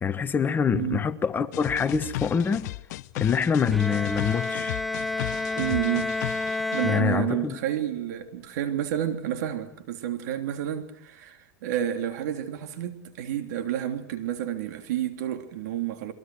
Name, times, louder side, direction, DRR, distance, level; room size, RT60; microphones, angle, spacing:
voice 1, 0.0-2.7 3.2-4.8 6.8-7.6, left 6 dB, 20° left, 1.2 m, -25 dB
voice 2, 0.7-1.0 5.6-6.1 6.7-16.1, right 11 dB, 70° right, 3.4 m, -30 dB
sound 1, 1.5-6.8, left 18 dB, 65° left, 0.9 m, -35 dB
Bowed string instrument, 3.7-7.7, left 2 dB, ahead, 1.2 m, -30 dB
29.0 x 22.5 x 6.4 m
supercardioid pair, 125°, 10 cm